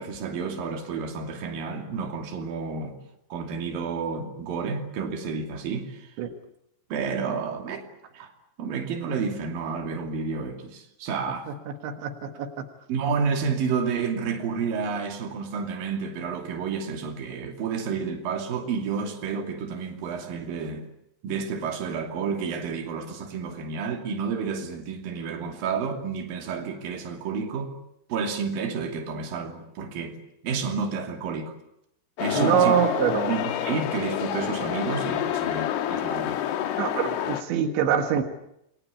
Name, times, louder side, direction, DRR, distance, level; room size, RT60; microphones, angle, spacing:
voice 1, 0.0-3.0 3.3-6.1 6.9-7.9 8.1-8.3 8.6-11.5 12.9-20.9 21.2-27.7 28.1-30.2 30.4-31.5 32.2-32.7 33.3-36.4, right 5 dB, 55° right, 4.2 m, -30 dB
voice 2, 11.8-12.5 32.3-33.4 36.8-38.2, right 9 dB, 85° right, 3.9 m, -24 dB
sound 1, 32.2-37.4, left 11 dB, 70° left, 3.2 m, -28 dB
28.0 x 21.5 x 8.6 m
omnidirectional pair, 5.1 m